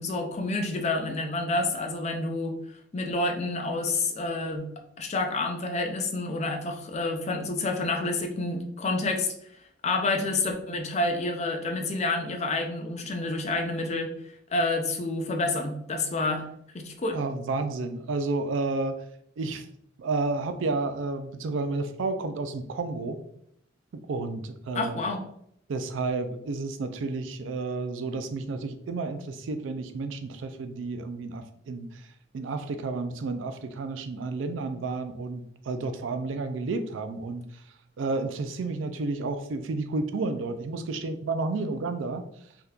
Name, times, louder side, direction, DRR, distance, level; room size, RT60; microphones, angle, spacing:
voice 1, 0.0-2.6 2.9-4.7 5.0-9.3 9.8-14.1 14.5-16.5 16.7-17.2 24.7-25.2, left 2 dB, 35° left, 3 dB, 0.5 m, -28 dB
voice 2, 17.1-19.0 19.4-19.6 20.0-23.2 24.1-25.0 25.7-31.9 32.3-37.4 38.0-42.2, right 3 dB, 75° right, 8 dB, 0.4 m, -31 dB
3.5 x 2.8 x 2.3 m, 0.72 s
head